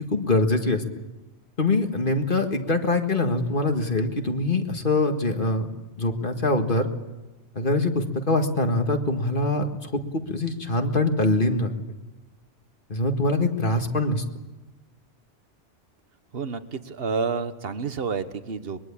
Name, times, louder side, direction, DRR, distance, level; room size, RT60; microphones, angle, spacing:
voice 1, 0.1-0.8 1.6-5.7 6.0-6.9 7.5-11.7 12.9-14.2, left 2 dB, 45° left, 5 dB, 2.0 m, -23 dB
voice 2, 16.3-18.8, right 5 dB, 55° right, 11 dB, 1.4 m, -29 dB
24.0 x 22.0 x 8.6 m, 1.1 s
omnidirectional pair, 1.2 m